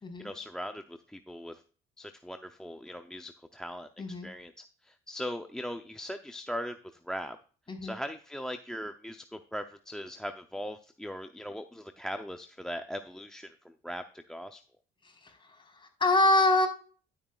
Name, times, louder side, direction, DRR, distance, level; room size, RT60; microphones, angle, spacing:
voice 1, 0.2-1.6 2.0-4.5 4.8-6.8 7.0-7.4 7.8-14.6, equal, 5° left, 8 dB, 0.6 m, -39 dB
voice 2, 4.0-4.3 7.7-7.9 16.0-16.7, left 1 dB, 25° left, 2 dB, 4.3 m, -24 dB
12.0 x 8.8 x 2.4 m, 0.40 s
cardioid pair, 90°, 21 cm